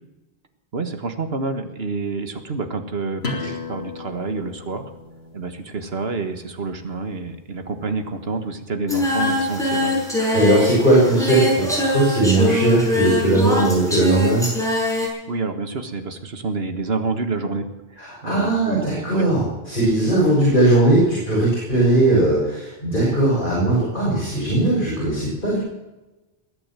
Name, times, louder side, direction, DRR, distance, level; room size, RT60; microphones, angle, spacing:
voice 1, 0.7-4.9 5.3-10.1 15.3-19.3, right 3 dB, 75° right, 8 dB, 1.8 m, -28 dB
sound 1, 3.2-8.6, left 4 dB, 85° left, 2.9 m, -37 dB
Singing, 8.9-15.1, left 2 dB, 5° left, 6.2 m, -23 dB
voice 2, 10.3-14.4 18.0-25.6, right 2 dB, 55° left, -6 dB, 6.5 m, -18 dB
21.0 x 8.9 x 7.5 m, 1.1 s
omnidirectional pair, 1.0 m